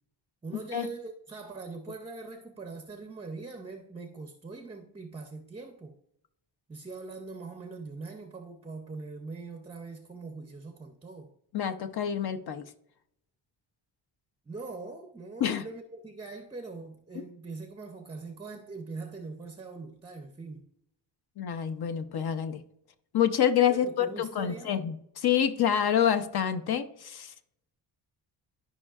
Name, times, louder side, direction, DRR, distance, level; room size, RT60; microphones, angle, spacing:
voice 1, 0.4-6.0 6.7-11.3 14.5-20.7 23.7-24.8, right 3 dB, 15° right, 0.5 m, -42 dB
voice 2, 11.5-12.6 15.4-15.6 21.4-22.6 23.1-27.3, left 9 dB, 55° left, 0.8 m, -27 dB
12.5 x 5.4 x 2.4 m
wide cardioid pair, 145°, 45 cm